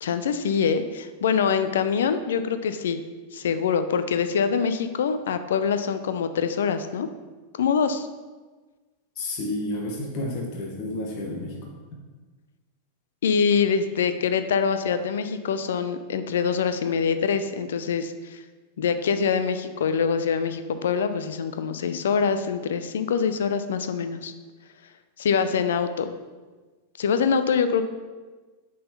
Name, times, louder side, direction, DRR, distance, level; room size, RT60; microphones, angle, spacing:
voice 1, 0.0-3.0 3.3-7.1 7.6-8.1 13.2-18.4 18.8-24.3 25.2-26.1 27.0-27.8, left 6 dB, 60° left, 10 dB, 0.4 m, -24 dB
voice 2, 9.2-11.7, left 1 dB, 40° left, 0 dB, 1.0 m, -31 dB
6.5 x 3.9 x 5.5 m, 1.3 s
figure-of-eight pair, 90°, 0 cm